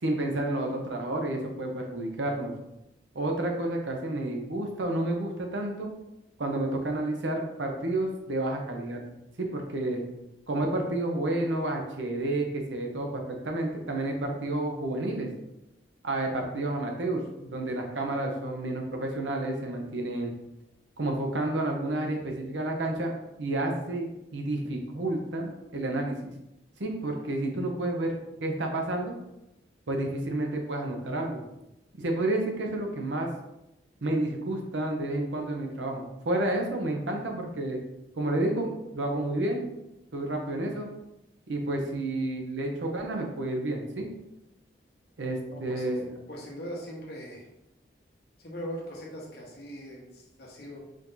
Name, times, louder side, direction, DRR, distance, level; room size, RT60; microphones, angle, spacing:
voice 1, 0.0-2.5 3.1-5.9 6.4-9.0 9.4-10.0 10.5-15.3 16.0-20.3 21.0-23.1 23.4-26.3 26.8-28.2 28.4-29.1 29.9-31.4 31.9-33.3 34.0-37.8 38.2-39.7 40.1-40.9 41.5-44.1 45.2-46.1, right 1 dB, 90° right, 2 dB, 0.8 m, -30 dB
voice 2, 45.5-45.8 46.3-47.5 48.4-50.8, equal, 60° left, -3 dB, 1.2 m, -40 dB
5.1 x 2.7 x 3.8 m, 0.90 s
head